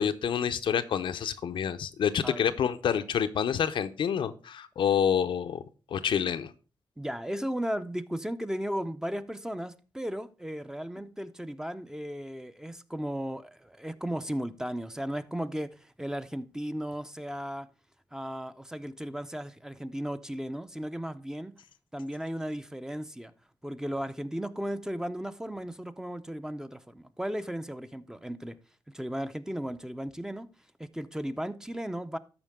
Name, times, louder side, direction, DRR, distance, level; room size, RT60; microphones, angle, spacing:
voice 1, 0.0-5.6 5.9-6.5, left 8 dB, 75° left, 0.6 m, -28 dB
voice 2, 7.0-17.7 18.1-21.5 21.9-23.3 23.6-28.6 28.9-30.5 30.8-32.2, equal, 5° right, 0.6 m, -35 dB
13.0 x 4.5 x 3.5 m
cardioid pair, 70°, 8 cm